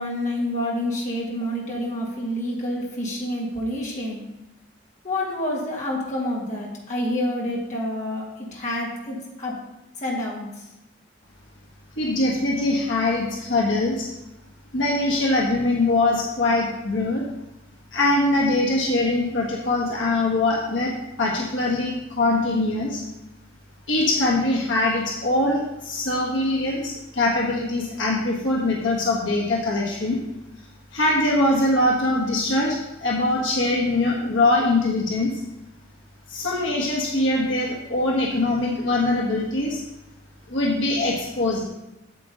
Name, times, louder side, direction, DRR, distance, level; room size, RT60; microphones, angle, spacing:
voice 1, 0.0-4.2 5.0-9.6 10.0-10.7, left 1 dB, 35° left, -3 dB, 2.1 m, -28 dB
voice 2, 12.0-14.1 14.7-17.2 17.9-23.0 23.9-30.2 30.9-35.4 36.3-39.8 40.5-41.7, left 2 dB, 65° left, -3 dB, 1.5 m, -22 dB
8.4 x 7.6 x 3.9 m, 0.93 s
head